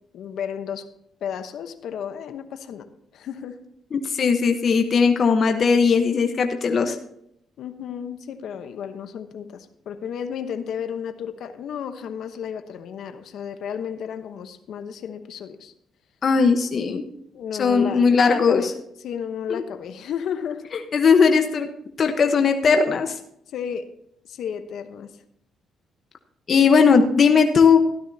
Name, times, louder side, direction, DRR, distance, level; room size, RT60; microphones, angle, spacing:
voice 1, 0.1-0.9 1.2-2.9 3.1-3.6 7.6-15.7 17.3-18.7 19.0-20.7 23.5-23.9 24.3-25.1, left 8 dB, 70° left, 8 dB, 1.0 m, -32 dB
voice 2, 3.9-7.0 16.2-17.0 17.6-18.7 19.5-19.6 20.9-21.7 22.0-23.2 26.5-27.8, left 5 dB, 50° left, 5 dB, 1.0 m, -18 dB
13.5 x 12.0 x 2.8 m, 0.73 s
cardioid pair, 90°, 0 cm